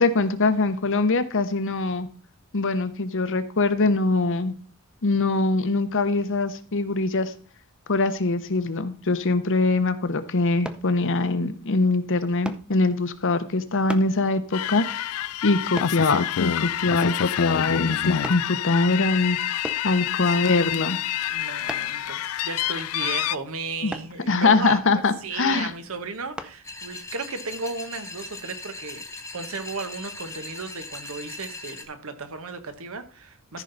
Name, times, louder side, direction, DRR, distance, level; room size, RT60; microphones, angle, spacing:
voice 1, 0.0-2.1 2.5-4.5 5.0-7.3 7.9-15.1 15.4-19.4 19.8-21.0 23.8-23.9 24.3-25.7 33.5-33.6, left 3 dB, 60° left, 0.9 m, -23 dB
sound 1, 10.7-10.9 12.5-12.7 13.9-14.1 15.8-16.0 17.0-17.3 18.2-18.5 19.6-19.9 21.7-22.0 23.9-24.1 26.4-26.6 27.1-27.3, equal, 5° right, 0.6 m, -35 dB
sound 2, 14.5-23.4, left 10 dB, 80° left, 0.4 m, -27 dB
voice 2, 20.2-20.5 21.3-29.0 29.3-33.6, right 4 dB, 70° right, 1.2 m, -35 dB
sound 3, 26.6-31.8, left 3 dB, 15° left, 1.3 m, -39 dB
14.0 x 5.6 x 4.0 m
head